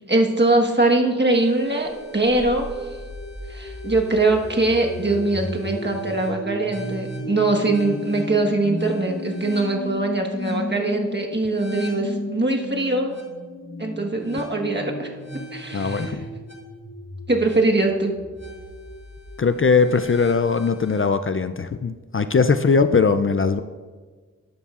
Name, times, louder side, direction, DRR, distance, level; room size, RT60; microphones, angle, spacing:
voice 1, 0.1-2.7 3.5-13.2 13.8-15.1 15.5-16.1 17.3-18.1, right 2 dB, 35° right, 1 dB, 1.3 m, -22 dB
sound 1, 1.3-21.1, left 1 dB, 65° left, 1.9 m, -35 dB
voice 2, 15.7-16.2 19.4-23.6, left 5 dB, 45° left, 10 dB, 0.4 m, -20 dB
12.5 x 11.0 x 2.5 m, 1.4 s
wide cardioid pair, 45°, 29 cm